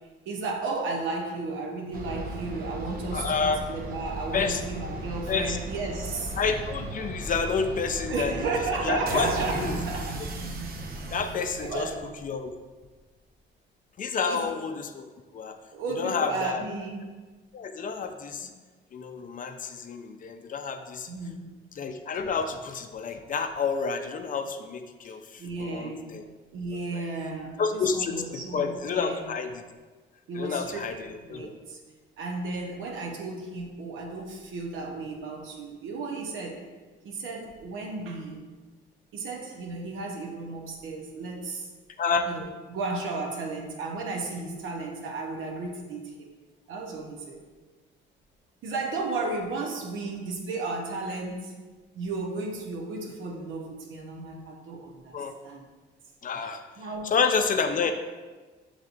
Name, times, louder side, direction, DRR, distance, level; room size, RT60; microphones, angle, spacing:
voice 1, 0.3-6.4 8.1-10.2 11.6-12.1 14.3-14.5 15.7-17.2 21.1-21.5 25.4-26.2 26.5-29.3 30.3-30.8 31.2-31.8 32.2-36.7 37.0-38.4 39.1-41.7 42.2-46.3 46.7-47.4 48.6-51.5 51.9-55.2 55.4-55.6 56.4-56.5 56.8-57.2, right 3 dB, 80° right, 1 dB, 0.8 m, -34 dB
sound 1, 1.9-12.2, right 2 dB, 50° right, 0.6 m, -36 dB
voice 2, 3.1-3.6 4.3-4.6 5.3-5.6 6.4-8.3 8.8-9.3 9.7-9.8 11.1-11.9 12.2-12.5 14.0-15.0 15.3-15.6 16.0-16.6 17.5-18.5 18.9-21.1 21.8-26.2 26.9-27.0 27.6-29.6 30.3-31.5 42.0-42.3 55.1-55.3 56.2-56.6 57.0-57.9, left 5 dB, 45° left, 7 dB, 0.4 m, -29 dB
6.5 x 3.2 x 2.5 m, 1.3 s
cardioid pair, 90°, 20 cm